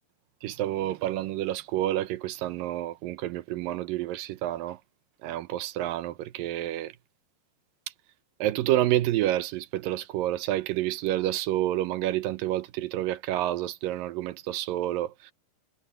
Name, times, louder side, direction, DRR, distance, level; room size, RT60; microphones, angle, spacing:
voice 1, 0.4-4.8 5.2-6.9 8.4-15.3, right 14 dB, 75° right, 2.1 m, -29 dB
omnidirectional pair, 5.0 m